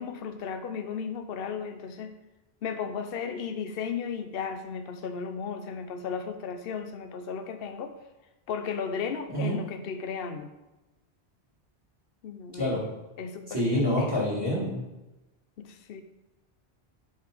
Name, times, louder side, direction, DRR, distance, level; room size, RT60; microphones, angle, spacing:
voice 1, 0.0-2.2 2.6-8.0 8.5-10.5 12.2-12.9 13.2-14.3 15.6-16.0, left 6 dB, 65° left, 7 dB, 0.9 m, -35 dB
voice 2, 13.5-14.8, equal, 20° right, -5 dB, 2.6 m, -27 dB
8.1 x 5.7 x 5.1 m, 1.0 s
omnidirectional pair, 1.1 m